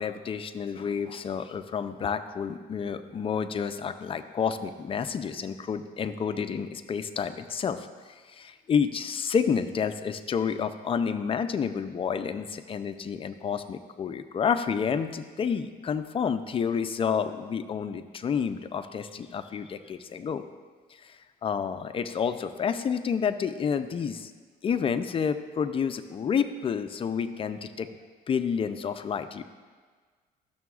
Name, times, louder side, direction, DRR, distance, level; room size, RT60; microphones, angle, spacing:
voice 1, 0.0-20.4 20.9-24.3 24.6-27.9 28.3-29.4, left 6 dB, 35° left, 10 dB, 0.4 m, -29 dB
12.5 x 6.8 x 2.4 m, 1.5 s
cardioid pair, 110°, 17 cm